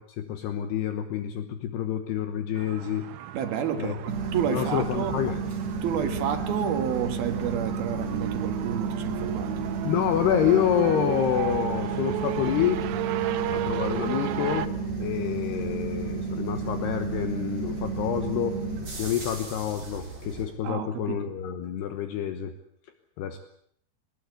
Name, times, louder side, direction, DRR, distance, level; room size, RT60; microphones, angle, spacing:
voice 1, 0.0-3.1 3.8-4.0 4.5-5.4 9.8-12.8 13.5-14.7 15.0-18.6 19.0-22.5 23.2-23.4, left 10 dB, 70° left, 9 dB, 3.0 m, -28 dB
sound 1, 2.6-14.7, right 12 dB, 90° right, 3.5 m, -35 dB
voice 2, 3.3-5.2 5.8-9.5 20.6-21.3, right 8 dB, 65° right, 8 dB, 3.2 m, -30 dB
sound 2, 4.1-20.4, right 4 dB, 40° right, 7.5 m, -32 dB
22.5 x 20.0 x 8.2 m, 0.68 s
omnidirectional pair, 5.2 m